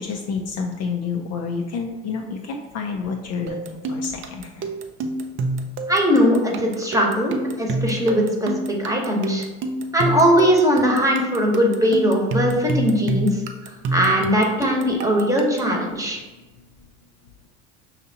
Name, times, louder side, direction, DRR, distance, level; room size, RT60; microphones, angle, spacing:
voice 1, 0.0-4.7, left 5 dB, 45° left, 2 dB, 0.5 m, -29 dB
sound 1, 3.5-15.8, right 2 dB, 35° right, 0.4 m, -28 dB
voice 2, 5.9-9.4 9.9-16.2, equal, 10° right, -1 dB, 1.0 m, -20 dB
5.6 x 2.7 x 2.7 m, 1.2 s
hypercardioid pair, 75°, 37 cm